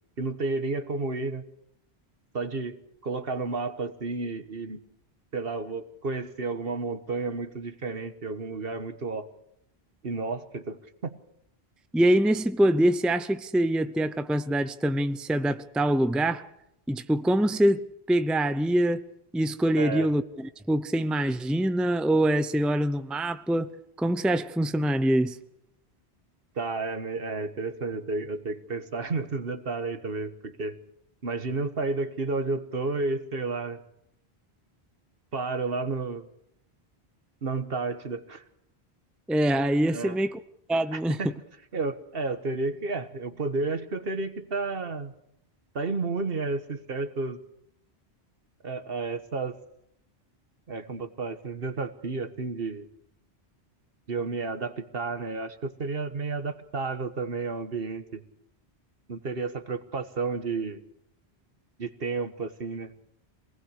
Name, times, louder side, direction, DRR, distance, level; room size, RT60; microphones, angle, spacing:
voice 1, 0.2-1.4 2.3-4.8 5.3-9.3 10.0-11.1 19.8-20.1 26.5-30.8 31.2-33.8 35.3-36.3 37.4-38.4 39.9-40.2 40.9-41.3 41.7-45.1 45.7-47.4 48.6-49.5 50.7-52.9 54.1-58.2 59.1-60.8 61.8-62.9, right 3 dB, 60° right, 1.5 m, -31 dB
voice 2, 11.9-16.5 16.9-19.0 19.3-23.7 24.0-25.4 39.3-40.4 40.7-41.2, right 1 dB, ahead, 0.6 m, -24 dB
24.5 x 19.0 x 6.5 m
omnidirectional pair, 1.1 m